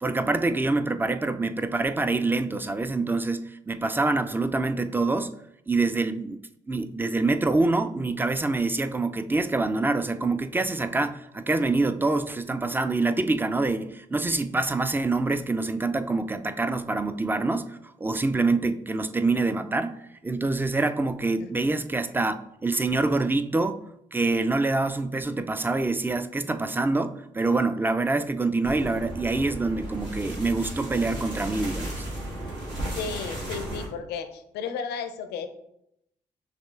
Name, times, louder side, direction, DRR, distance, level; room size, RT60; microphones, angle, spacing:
voice 1, 0.0-5.3 5.7-6.4 6.7-23.8 24.1-32.0, right 3 dB, 10° right, 0.3 m, -26 dB
sound 1, 28.6-33.9, right 1 dB, 75° right, 1.4 m, -34 dB
voice 2, 33.0-35.5, left 6 dB, 70° left, 0.4 m, -34 dB
6.1 x 2.4 x 2.4 m
hypercardioid pair, 40°, 18 cm